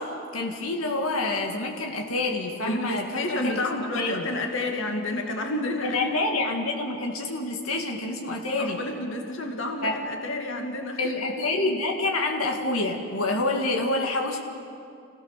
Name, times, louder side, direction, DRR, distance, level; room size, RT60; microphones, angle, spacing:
voice 1, 0.0-4.3 5.8-8.8 9.8-10.0 11.0-14.4, left 2 dB, 90° left, 2 dB, 2.2 m, -27 dB
voice 2, 2.7-6.2 8.6-11.1, left 2 dB, 65° left, 2 dB, 2.3 m, -30 dB
29.0 x 17.0 x 6.7 m, 2.5 s
head